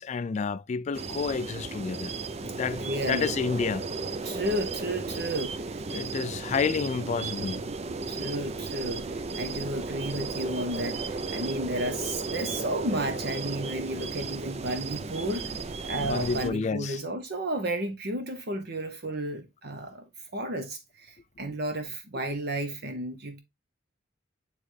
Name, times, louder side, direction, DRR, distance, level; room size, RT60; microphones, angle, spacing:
voice 1, 0.0-2.1 2.4-3.8 5.9-7.6 16.0-17.0, left 5 dB, 40° left, 0.3 m, -30 dB
sound 1, 0.9-16.5, right 4 dB, 35° right, 0.5 m, -34 dB
voice 2, 2.8-3.4 4.2-5.6 8.1-15.5 15.8-20.0 20.3-23.4, right 1 dB, 55° right, 1.0 m, -32 dB
9.7 x 3.3 x 3.2 m
head